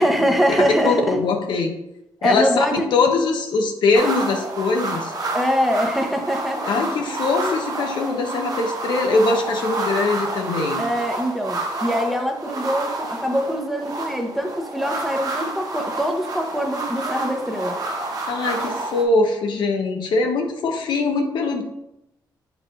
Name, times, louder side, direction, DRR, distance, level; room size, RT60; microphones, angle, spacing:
voice 1, 0.0-1.2 2.2-2.9 5.3-6.8 10.8-17.8, equal, ahead, 3 dB, 0.9 m, -23 dB
voice 2, 0.6-1.7 2.2-5.1 6.6-10.8 18.3-21.6, left 3 dB, 75° left, 3 dB, 0.9 m, -22 dB
sound 1, 3.9-19.0, right 2 dB, 50° right, 1.1 m, -29 dB
8.0 x 4.9 x 2.6 m, 0.87 s
cardioid pair, 115°, 8 cm